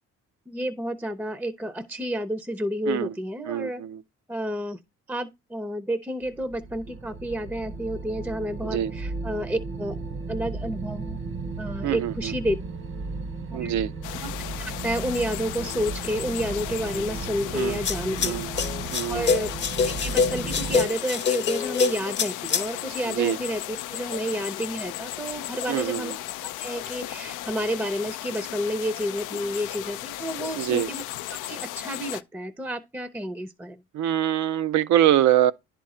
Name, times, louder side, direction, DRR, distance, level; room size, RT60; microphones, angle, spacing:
voice 1, 0.5-3.8 4.3-4.8 5.1-10.0 10.3-11.2 11.6-12.6 13.5-13.8 14.2-14.3 14.6-18.4 19.1-19.5 19.8-26.1 26.4-31.0 31.4-33.8, equal, 5° right, 0.6 m, -30 dB
voice 2, 3.5-4.0 8.7-8.9 11.8-12.1 13.5-13.9 17.5-17.8 18.2-18.5 18.9-19.2 23.1-23.4 25.7-26.1 30.6-30.9 33.9-35.5, right 11 dB, 70° right, 0.5 m, -24 dB
sound 1, 6.2-20.9, right 3 dB, 40° right, 0.8 m, -35 dB
sound 2, 14.0-32.2, left 14 dB, 85° left, 0.4 m, -36 dB
sound 3, 17.6-22.7, left 5 dB, 40° left, 0.7 m, -25 dB
10.5 x 3.7 x 4.3 m
cardioid pair, 90°, 30 cm